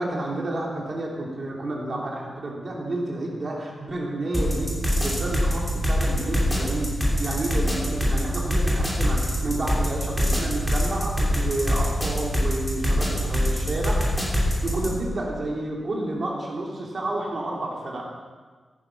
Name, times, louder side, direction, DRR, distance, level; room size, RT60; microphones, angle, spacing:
voice 1, 0.0-14.1 14.6-18.1, right 1 dB, 40° right, -2 dB, 3.2 m, -30 dB
sound 1, 4.3-15.0, equal, 5° left, 3.1 m, -24 dB
16.5 x 9.8 x 6.0 m, 1.4 s
wide cardioid pair, 170°, 0 cm